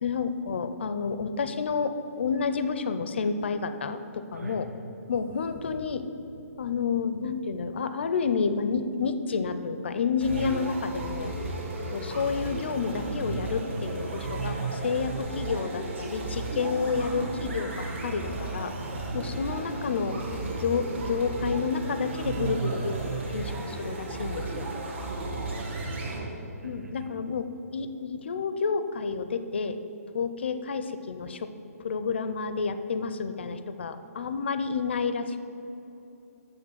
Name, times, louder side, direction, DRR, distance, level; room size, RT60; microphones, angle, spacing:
voice 1, 0.0-4.6 5.1-6.1 6.6-11.3 11.9-18.7 19.1-20.2 20.6-24.7 26.6-29.8 30.1-31.5 31.8-35.5, left 5 dB, 45° left, 10 dB, 0.4 m, -30 dB
voice 2, 4.3-4.7 11.7-12.0 19.0-19.3 25.1-27.1, right 2 dB, 75° right, 3 dB, 1.4 m, -41 dB
sound 1, 10.2-26.2, right 2 dB, 45° right, 1.5 m, -34 dB
6.9 x 6.1 x 7.3 m, 3.0 s
hypercardioid pair, 175°, 9 cm